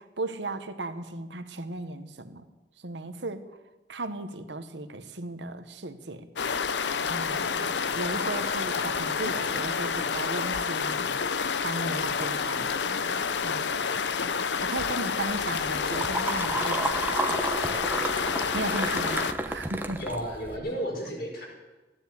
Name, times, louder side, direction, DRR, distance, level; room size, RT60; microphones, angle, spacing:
voice 1, 0.0-2.5 2.8-3.5 3.9-6.3 7.0-11.1 11.6-13.0 13.4-13.7 14.6-17.2 18.2-20.0, right 2 dB, 90° right, 9 dB, 1.3 m, -36 dB
sound 1, 6.4-19.3, left 5 dB, 85° left, 0.7 m, -29 dB
sound 2, 15.3-20.6, right 2 dB, 10° right, 0.9 m, -32 dB
voice 2, 20.0-21.4, equal, 55° left, -1 dB, 5.4 m, -33 dB
15.5 x 10.5 x 8.4 m, 1.1 s
head